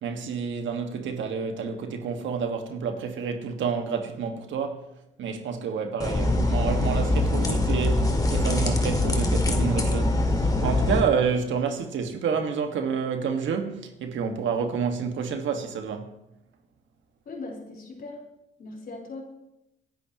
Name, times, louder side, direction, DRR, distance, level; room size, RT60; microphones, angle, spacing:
voice 1, 0.0-4.8 5.2-16.1, right 6 dB, 75° right, 1.7 m, -29 dB
sound 1, 6.0-11.0, left 2 dB, 20° left, 2.0 m, -23 dB
voice 2, 17.3-18.2 18.6-19.2, left 3 dB, 50° left, 4.2 m, -39 dB
27.0 x 10.5 x 3.0 m
cardioid pair, 90°, 20 cm